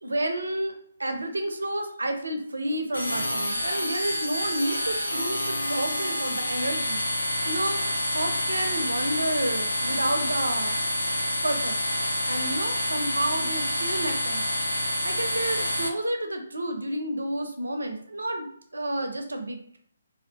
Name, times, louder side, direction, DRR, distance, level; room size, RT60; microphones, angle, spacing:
voice 1, 0.0-7.0 7.5-7.8 8.1-10.8 11.4-11.8 12.3-14.4 15.0-19.8, right 1 dB, 70° right, 5 dB, 0.4 m, -30 dB
sound 1, 2.9-15.9, left 1 dB, 80° left, 0.4 m, -28 dB
2.6 x 2.3 x 2.2 m, 0.65 s
figure-of-eight pair, 140°, 0 cm